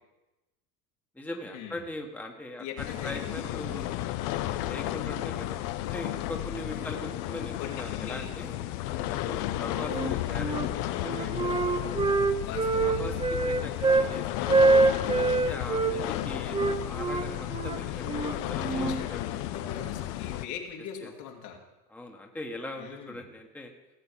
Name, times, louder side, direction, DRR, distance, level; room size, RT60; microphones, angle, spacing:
voice 1, 1.1-3.9 4.4-8.6 9.2-12.2 12.8-14.7 15.2-19.4 21.0-21.1 21.9-23.7, left 1 dB, 5° left, 2 dB, 1.3 m, -41 dB
voice 2, 2.6-3.7 4.8-5.0 6.7-7.1 7.6-8.3 8.8-9.1 12.4-13.0 18.4-21.6 22.8-23.2, left 8 dB, 75° left, 0 dB, 2.9 m, -41 dB
sound 1, 2.8-20.5, left 14 dB, 55° left, 0.8 m, -33 dB
Wind instrument woodwind instrument, 9.8-10.7 11.0-14.1 14.5-15.9 16.5-19.0, right 3 dB, 15° right, 0.7 m, -25 dB
17.0 x 7.8 x 5.7 m, 1.0 s
supercardioid pair, 115°, 48 cm